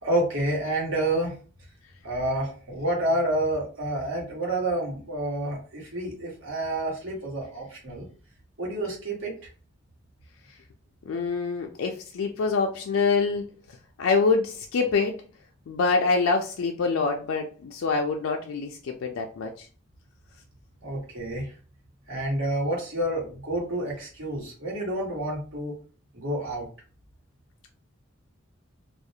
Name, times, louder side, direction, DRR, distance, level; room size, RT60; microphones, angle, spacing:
voice 1, 0.0-1.3 2.0-8.1 8.6-9.3 20.8-21.5 22.1-25.7 26.1-26.7, right 1 dB, 80° right, -3 dB, 1.1 m, -29 dB
voice 2, 11.0-15.2 15.7-19.7, left 4 dB, 80° left, 2 dB, 0.4 m, -26 dB
2.4 x 2.0 x 2.7 m, 0.37 s
head